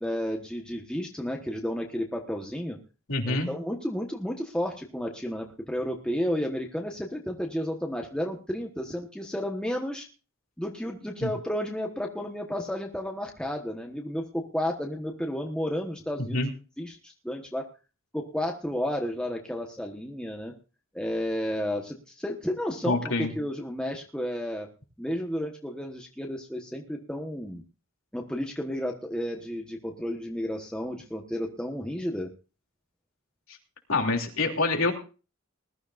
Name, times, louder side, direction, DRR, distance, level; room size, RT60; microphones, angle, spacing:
voice 1, 0.0-2.8 3.3-10.1 10.6-16.4 16.8-17.6 18.1-20.5 20.9-24.7 25.0-27.6 28.1-32.3, equal, 5° left, 1 dB, 1.3 m, -32 dB
voice 2, 3.1-3.5 11.2-11.3 16.3-16.5 22.8-23.3 33.9-34.9, left 3 dB, 80° left, 2 dB, 3.0 m, -26 dB
20.0 x 13.0 x 2.6 m, 0.34 s
head